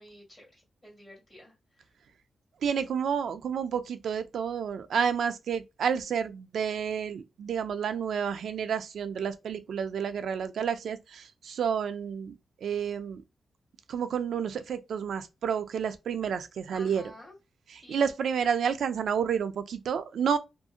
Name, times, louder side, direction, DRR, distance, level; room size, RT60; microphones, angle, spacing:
voice 1, 0.0-1.9 16.7-17.3 17.8-18.1, left 1 dB, 10° left, 1.7 m, -51 dB
voice 2, 2.6-12.4 12.6-13.2 13.9-17.0 17.9-20.4, right 7 dB, 80° right, 0.4 m, -30 dB
2.7 x 2.5 x 2.4 m
wide cardioid pair, 135°, 0 cm